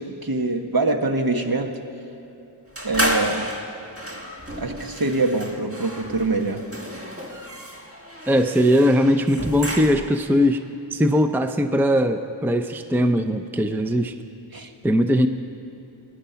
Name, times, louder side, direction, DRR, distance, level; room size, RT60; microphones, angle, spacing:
voice 1, 0.0-1.7 2.8-3.5 4.5-6.6 14.5-14.7, right 2 dB, 45° right, 4 dB, 1.2 m, -24 dB
sound 1, 2.8-10.3, equal, 30° right, 1.7 m, -31 dB
voice 2, 8.3-10.6 10.9-14.1 14.8-15.3, equal, 5° right, 8 dB, 0.6 m, -20 dB
17.5 x 10.5 x 5.8 m, 2.7 s
wide cardioid pair, 40°, 47 cm